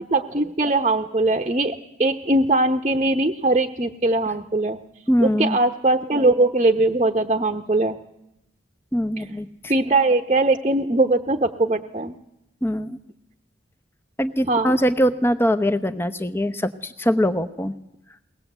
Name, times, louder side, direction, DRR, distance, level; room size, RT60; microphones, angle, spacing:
voice 1, 0.1-4.8 5.2-8.0 9.2-9.3 9.7-12.1 14.5-14.8, right 2 dB, 30° right, 3 dB, 0.9 m, -21 dB
voice 2, 5.1-5.6 8.9-9.5 12.6-13.0 14.2-17.7, equal, 15° left, 10 dB, 0.9 m, -22 dB
22.0 x 19.5 x 8.1 m, 0.83 s
head